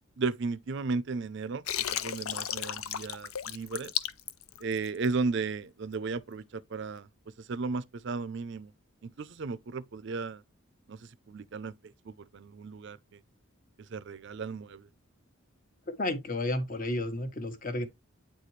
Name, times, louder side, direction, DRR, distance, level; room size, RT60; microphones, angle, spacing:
voice 1, 0.2-1.6 1.9-3.9 4.6-7.1 7.5-8.7 9.0-10.4 10.9-11.0 11.3-11.7 12.1-13.2 13.9-14.9, right 4 dB, 55° right, 0.5 m, -34 dB
Water, 1.7-5.1, left 10 dB, 85° left, 0.6 m, -34 dB
voice 2, 15.9-17.8, left 1 dB, 40° left, 1.1 m, -32 dB
8.7 x 4.2 x 3.1 m
head